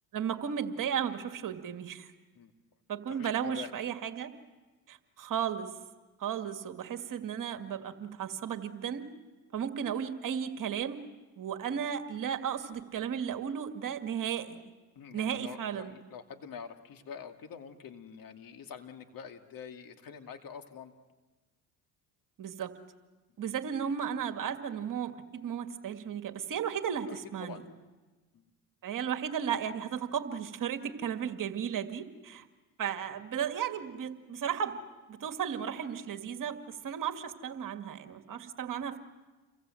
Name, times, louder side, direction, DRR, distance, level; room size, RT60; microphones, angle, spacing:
voice 1, 0.1-2.1 2.9-4.3 4.9-5.7 6.2-9.1 9.5-11.0 11.4-14.6 15.1-15.9 22.4-22.7 23.4-27.6 28.8-32.4 32.8-34.8 35.1-36.6 36.8-39.0, right 8 dB, 45° right, 7 dB, 2.2 m, -34 dB
voice 2, 3.1-3.7 14.9-20.9 27.1-27.6 28.3-28.4, left 7 dB, 50° left, 6 dB, 2.5 m, -46 dB
29.0 x 24.0 x 7.8 m, 1.2 s
supercardioid pair, 75°, 43 cm